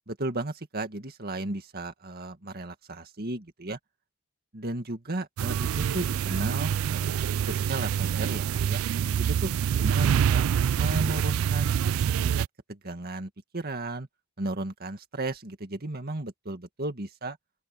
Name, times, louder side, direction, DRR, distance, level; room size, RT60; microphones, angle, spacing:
voice 1, 0.1-3.8 4.5-7.2 7.5-8.8 9.4-9.5 9.8-10.5 10.7-11.8 12.2-14.1 14.4-17.4, right 2 dB, 50° right, 2.1 m, -34 dB
sound 1, 5.4-12.5, right 8 dB, 80° right, 0.3 m, -26 dB
open air
head